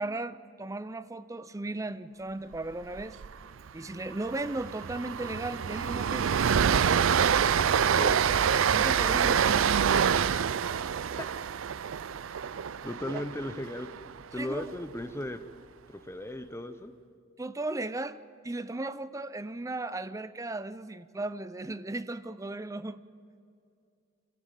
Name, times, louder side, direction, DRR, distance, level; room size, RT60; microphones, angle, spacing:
voice 1, 0.0-3.2 3.7-6.3 8.7-9.5 13.1-13.2 14.4-14.7 17.4-18.2 18.4-23.0, right 2 dB, 15° right, 15 dB, 0.5 m, -36 dB
Train, 3.0-3.3 3.5-3.7 4.1-14.2, right 7 dB, 90° right, 0.5 m, -26 dB
voice 2, 7.9-8.4 10.8-10.9 11.2-11.3 12.8-13.9 14.3-15.4 15.9-16.9, left 1 dB, 15° left, 10 dB, 0.8 m, -36 dB
25.5 x 15.5 x 7.7 m, 2.4 s
head